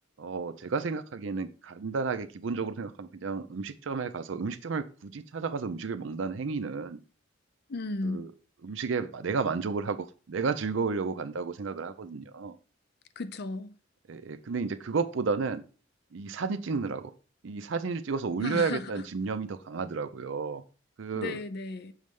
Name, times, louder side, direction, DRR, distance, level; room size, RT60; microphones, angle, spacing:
voice 1, 0.2-7.0 8.0-8.3 8.6-12.6 14.1-15.6 16.1-17.1 17.4-20.6 21.0-21.4, right 4 dB, 70° right, 0.5 m, -32 dB
voice 2, 7.7-8.3 13.2-13.7 18.4-19.0 21.1-21.9, left 3 dB, 55° left, 0.5 m, -34 dB
6.4 x 3.2 x 5.2 m
head